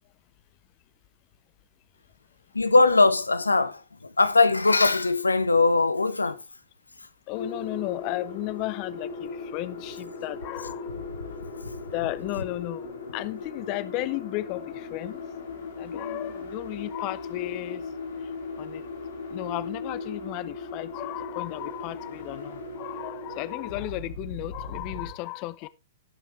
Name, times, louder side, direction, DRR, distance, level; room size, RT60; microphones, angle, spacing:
voice 1, 2.5-6.4, left 3 dB, 85° left, 0.9 m, -21 dB
sound 1, 7.3-25.1, left 3 dB, 70° left, 2.4 m, -38 dB
voice 2, 7.3-10.9 11.9-15.2 15.8-17.9 18.2-18.3 18.6-18.8 19.3-25.7, left 19 dB, 40° left, 0.6 m, -34 dB
16.5 x 6.0 x 3.2 m
figure-of-eight pair, 110°, 0 cm